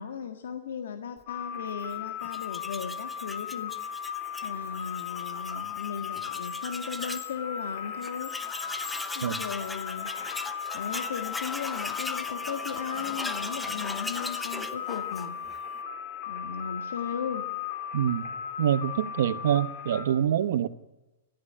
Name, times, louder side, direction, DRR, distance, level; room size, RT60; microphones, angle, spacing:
voice 1, 0.0-3.7 4.4-8.3 9.1-10.1 10.7-15.4 16.3-17.5, left 7 dB, 80° left, 1.7 m, -36 dB
sound 1, 1.3-20.1, left 8 dB, 35° left, 3.4 m, -36 dB
Tools, 2.2-7.3 7.7-7.8 8.0-15.6, left 2 dB, 5° left, 0.7 m, -39 dB
voice 2, 17.9-18.3 18.6-20.7, right 10 dB, 60° right, 1.0 m, -25 dB
20.5 x 14.0 x 9.9 m
supercardioid pair, 170°, 0 cm